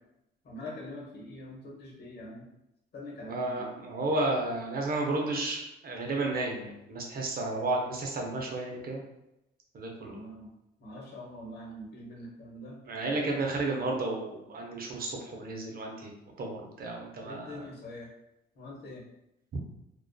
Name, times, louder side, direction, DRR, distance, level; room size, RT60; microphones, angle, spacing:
voice 1, 0.4-2.5 2.9-3.7 10.0-10.5 10.8-12.8 13.3-13.6 17.2-18.1 18.5-19.0, left 1 dB, 55° left, -3 dB, 0.9 m, -44 dB
voice 2, 3.2-9.0 9.7-10.2 12.9-16.1 16.4-17.7 19.5-19.6, right 2 dB, 50° right, 0 dB, 0.6 m, -32 dB
2.4 x 2.3 x 2.2 m, 0.88 s
cardioid pair, 90°, 20 cm